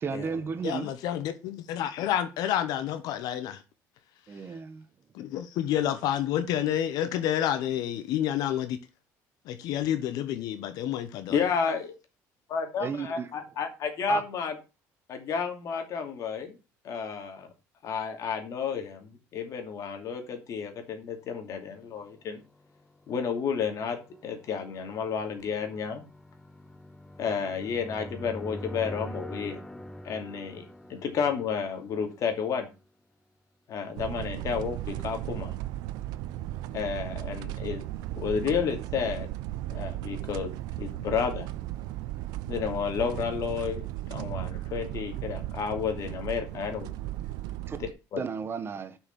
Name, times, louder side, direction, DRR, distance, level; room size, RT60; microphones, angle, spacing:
voice 1, 0.0-0.9 4.3-4.9 12.8-13.3 14.1-14.2 47.7-47.8 48.2-49.0, right 5 dB, 35° right, 1.2 m, -33 dB
voice 2, 0.6-3.6 5.1-8.8 9.5-11.4, left 11 dB, 75° left, 0.9 m, -29 dB
voice 3, 11.3-11.9 12.5-14.5 15.1-16.6 16.8-17.5 17.8-22.4 23.1-26.0 27.2-29.6 30.0-30.6 30.9-32.7 33.7-35.5 36.7-37.8 38.2-39.3 39.7-40.5 40.8-41.5 42.5-46.9 47.8-48.2, left 6 dB, 55° left, 2.6 m, -31 dB
sound 1, 22.1-32.7, equal, 10° left, 0.9 m, -44 dB
sound 2, 34.0-47.9, right 15 dB, 80° right, 0.6 m, -36 dB
6.5 x 5.8 x 7.4 m
cardioid pair, 110°, 7 cm